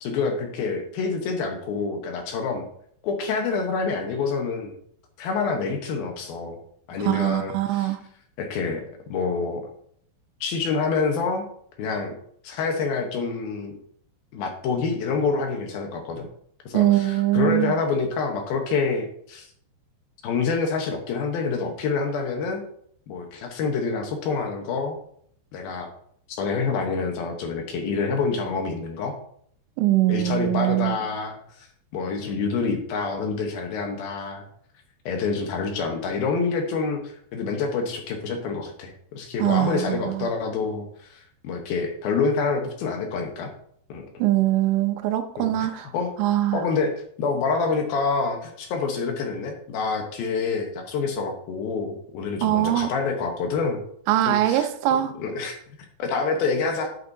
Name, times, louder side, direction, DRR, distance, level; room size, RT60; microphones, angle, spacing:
voice 1, 0.0-2.7 3.0-4.7 5.2-6.6 6.9-8.0 8.4-8.8 9.1-9.6 10.4-11.5 11.8-12.1 12.4-13.8 14.3-16.2 16.7-19.5 20.2-22.6 23.1-25.0 25.5-25.9 26.4-29.2 30.1-31.7 31.9-34.4 35.1-43.5 43.9-44.2 45.4-46.1 46.5-53.8 54.3-54.7 55.2-55.6 56.0-56.9, left 4 dB, 70° left, 3 dB, 2.6 m, -27 dB
voice 2, 7.0-8.0 16.7-17.7 29.8-31.0 39.4-40.3 44.2-45.9 46.2-46.6 52.4-52.9 54.1-55.1, right 14 dB, 90° right, 9 dB, 3.1 m, -22 dB
10.5 x 8.3 x 2.7 m, 0.65 s
omnidirectional pair, 5.1 m